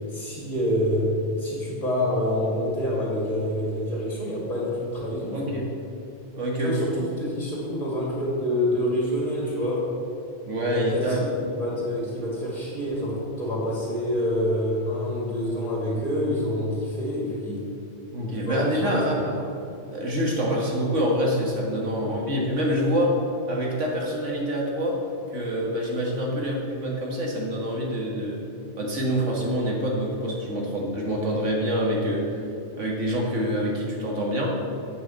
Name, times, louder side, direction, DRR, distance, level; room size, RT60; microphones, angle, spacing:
voice 1, 0.1-5.6 6.6-9.9 10.7-17.6 18.2-19.1 21.9-22.2, left 1 dB, 35° left, -5 dB, 2.5 m, -27 dB
voice 2, 5.3-5.7 6.3-6.8 10.5-11.3 18.1-19.2 19.9-23.2 23.5-25.0 25.3-28.4 28.8-32.2 32.8-34.5, equal, 85° right, -2 dB, 2.2 m, -26 dB
8.3 x 6.4 x 7.6 m, 2.7 s
omnidirectional pair, 1.2 m